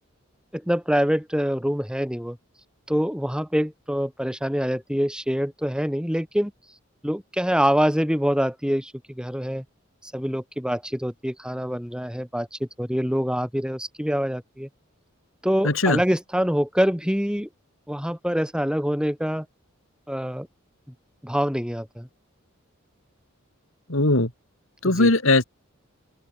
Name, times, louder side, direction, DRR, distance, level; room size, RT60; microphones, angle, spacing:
voice 1, 0.5-2.4 2.9-6.5 7.0-9.6 10.0-14.7 15.4-17.5 17.9-19.5 20.1-20.5 21.2-22.1 24.8-25.1, equal, 5° right, 6.1 m, -25 dB
voice 2, 15.6-16.0 23.9-24.3 24.8-25.4, left 2 dB, 70° left, 3.8 m, -19 dB
open air
head